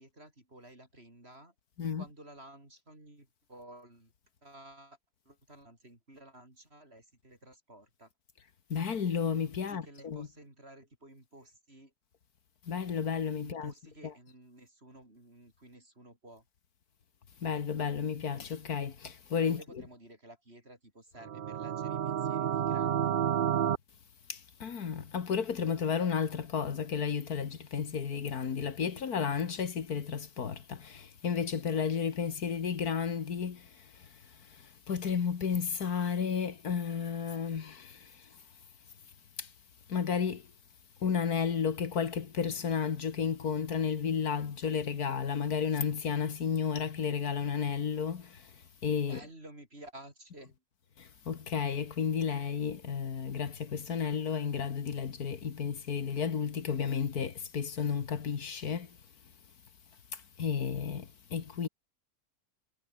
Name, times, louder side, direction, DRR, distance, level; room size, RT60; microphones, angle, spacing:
voice 1, 0.0-1.5 2.0-4.1 4.4-5.0 5.3-8.1 9.6-11.9 13.4-16.4 19.5-23.1 49.0-50.5, right 1 dB, 40° right, 7.3 m, -53 dB
voice 2, 8.7-10.3 12.7-13.7 14.0-14.1 17.4-19.8 24.3-34.1 34.4-38.3 39.4-39.5 39.9-40.5 41.0-48.5 48.8-49.2 51.0-59.0 60.1-61.7, left 6 dB, 70° left, 2.1 m, -32 dB
sound 1, 21.2-23.8, right 9 dB, 80° right, 0.4 m, -30 dB
omnidirectional pair, 1.6 m